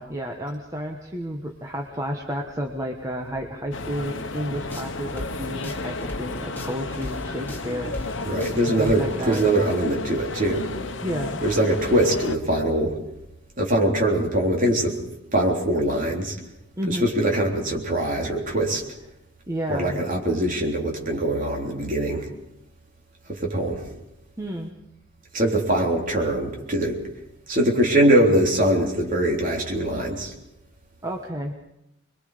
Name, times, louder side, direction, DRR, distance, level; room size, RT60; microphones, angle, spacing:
voice 1, 0.0-8.3 8.8-9.5 11.0-11.5 16.8-17.1 19.5-20.0 24.4-24.7 31.0-31.5, equal, 15° right, 2 dB, 1.3 m, -31 dB
sound 1, 3.7-12.4, left 2 dB, 70° left, 1.2 m, -32 dB
sound 2, 4.5-9.8, left 1 dB, 10° left, 2.7 m, -38 dB
voice 2, 8.2-10.7 11.4-13.0 13.6-15.0 15.3-16.4 16.9-18.8 19.7-22.3 23.3-23.8 25.3-27.0 27.5-30.3, right 1 dB, 40° right, 0 dB, 3.6 m, -22 dB
26.5 x 22.0 x 5.1 m, 0.84 s
head